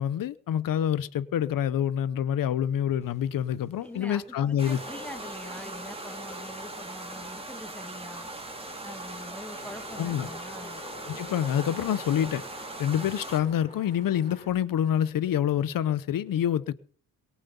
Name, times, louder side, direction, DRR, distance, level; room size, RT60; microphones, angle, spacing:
voice 1, 0.0-4.8 10.0-10.3 11.1-12.4 12.8-16.7, left 10 dB, 85° left, 0.8 m, -27 dB
Wind / Rain, 3.0-14.5, left 2 dB, 20° left, 7.1 m, -48 dB
voice 2, 3.8-8.3 8.8-10.8, left 1 dB, 5° left, 1.9 m, -44 dB
sound 1, 4.6-13.4, right 2 dB, 15° right, 3.3 m, -40 dB
22.0 x 7.5 x 6.9 m
wide cardioid pair, 150°, 33 cm